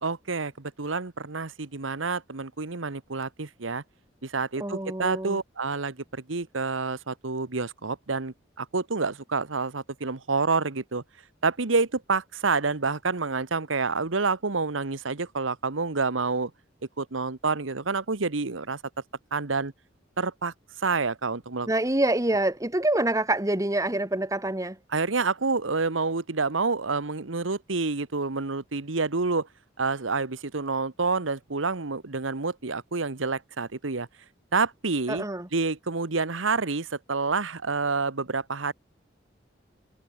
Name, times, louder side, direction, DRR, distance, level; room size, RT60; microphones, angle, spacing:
voice 1, 0.0-3.8 4.2-11.0 11.4-16.5 17.0-18.8 19.3-19.7 20.2-20.5 20.8-21.7 24.9-29.5 29.8-34.1 34.5-35.2 35.5-38.7, right 4 dB, 90° right, 1.3 m, -28 dB
voice 2, 4.6-5.4 21.7-24.8 35.1-35.5, right 1 dB, 15° right, 1.6 m, -26 dB
head